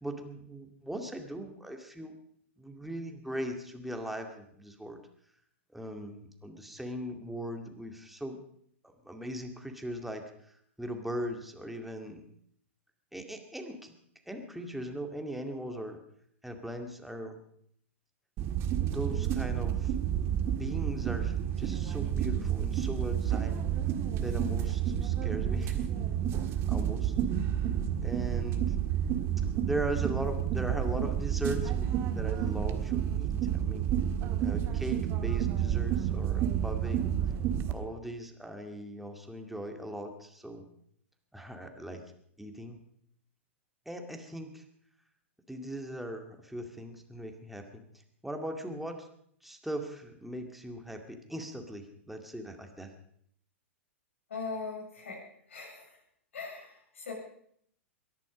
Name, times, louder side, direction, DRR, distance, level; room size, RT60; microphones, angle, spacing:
voice 1, 0.0-2.1 2.6-5.0 5.7-8.4 8.8-10.2 10.8-12.2 13.1-13.9 14.3-16.0 16.4-17.4 18.9-19.9 20.5-23.6 24.2-26.1 26.7-27.1 28.0-28.8 29.6-33.9 34.4-37.0 37.7-40.6 41.3-42.0 42.4-42.8 43.9-44.6 45.5-47.7 48.2-49.1 49.4-52.9, right 1 dB, ahead, 4 dB, 2.2 m, -39 dB
sound 1, 18.4-37.7, right 10 dB, 35° right, 1.6 m, -30 dB
voice 2, 54.3-56.0 56.3-57.1, left 4 dB, 75° left, -1 dB, 7.3 m, -40 dB
22.5 x 11.0 x 5.2 m, 0.66 s
hypercardioid pair, 105°, 7 cm